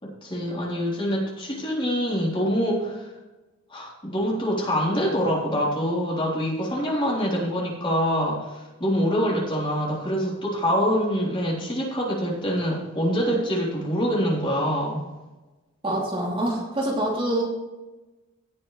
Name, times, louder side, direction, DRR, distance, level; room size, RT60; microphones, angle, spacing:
voice 1, 0.0-3.1 3.7-15.1, equal, 25° left, -4 dB, 3.5 m, -25 dB
voice 2, 15.8-17.4, right 1 dB, 25° right, -3 dB, 2.9 m, -25 dB
17.5 x 7.1 x 3.3 m, 1.1 s
head